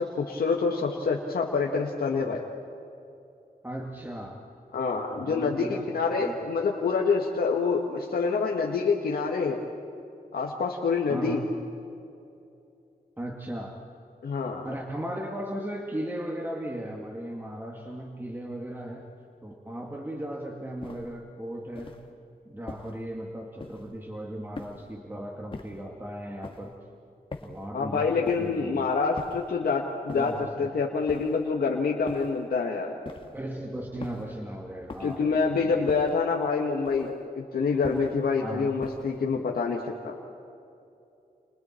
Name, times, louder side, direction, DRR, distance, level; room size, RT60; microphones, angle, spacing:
voice 1, 0.0-2.4 4.7-9.7 10.3-11.4 14.2-14.7 27.7-33.0 35.0-40.2, left 4 dB, 90° left, -1 dB, 1.8 m, -27 dB
voice 2, 3.6-4.4 5.1-5.9 6.2-6.3 11.1-11.5 13.2-13.8 14.6-19.1 19.4-22.0 22.5-26.7 27.4-28.9 30.1-30.5 33.3-36.0 38.4-38.7, right 1 dB, 15° right, 0 dB, 2.2 m, -36 dB
sound 1, 20.8-21.2 21.7-22.1 22.7-23.0 23.6-24.0 24.5-25.0 25.5-25.9 26.4-26.8 27.3-27.7 28.3-28.6 29.2-29.5 30.1-30.5 31.1-31.5 32.1-32.4 33.0-33.5 34.0-34.4 34.9-35.3 35.9-36.3 36.8-37.2 37.8-38.2 38.8-39.2, left 3 dB, 35° left, 2.2 m, -43 dB
30.0 x 29.5 x 4.6 m, 2.7 s
wide cardioid pair, 95°, 15 cm